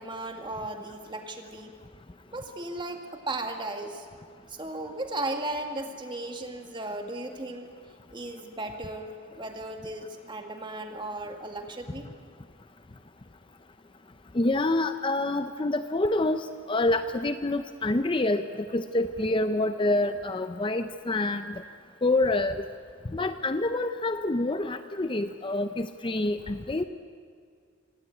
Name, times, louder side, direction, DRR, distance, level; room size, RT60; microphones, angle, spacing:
voice 1, 0.0-1.7 2.3-4.1 4.5-7.7 8.1-12.1, right 2 dB, 20° right, 4 dB, 1.9 m, -36 dB
voice 2, 14.3-18.5 18.7-21.5 22.0-22.6 23.1-26.8, left 2 dB, 25° left, 9 dB, 0.5 m, -27 dB
25.0 x 17.0 x 9.2 m, 2.1 s
head